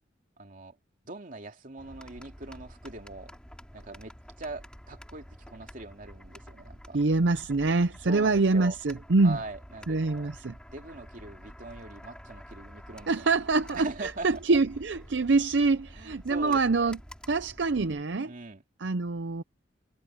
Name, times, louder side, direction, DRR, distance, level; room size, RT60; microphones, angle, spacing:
voice 1, 0.4-0.8 1.1-3.3 3.7-7.0 8.0-8.8 9.2-10.3 10.7-13.3 13.7-14.4 15.9-16.8 18.2-18.6, right 2 dB, 45° right, 2.5 m, -42 dB
sound 1, 1.8-18.0, equal, 5° left, 4.6 m, -49 dB
voice 2, 6.9-9.4 9.9-10.5 13.1-17.0 17.3-18.3 18.8-19.4, right 3 dB, 70° right, 0.7 m, -25 dB
head